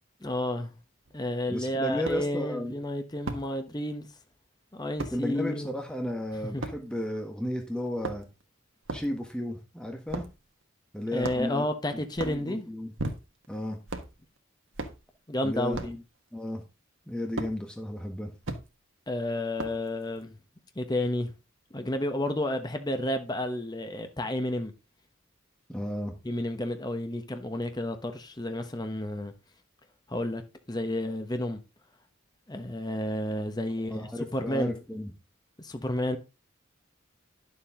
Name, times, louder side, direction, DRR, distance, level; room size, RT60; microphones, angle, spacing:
voice 1, 0.2-0.8 1.1-4.1 4.7-5.7 6.5-6.7 11.1-12.7 15.3-15.9 19.1-20.3 20.8-21.3 21.7-24.7 26.2-29.3 30.1-30.4 30.7-31.6 32.5-34.8 35.6-36.2, left 1 dB, 20° left, 1.1 m, -31 dB
sound 1, 1.1-1.2 2.1-2.2 3.3-3.5 5.0-5.2 6.6-6.8 7.9-8.4 8.9-9.1 10.1-10.4 11.2-11.6 12.1-12.4 13.0-13.5 13.9-14.1 14.8-15.0 15.7-16.0 17.4-17.5 18.4-18.6 19.6-19.9, right 2 dB, 75° right, 1.6 m, -35 dB
voice 2, 1.5-2.7 5.1-8.3 8.9-10.2 10.9-11.6 11.9-12.9 13.5-13.8 15.4-16.0 16.3-16.6 17.1-18.3 25.7-26.1 33.8-35.1, equal, 5° left, 1.4 m, -33 dB
11.0 x 7.2 x 3.7 m
head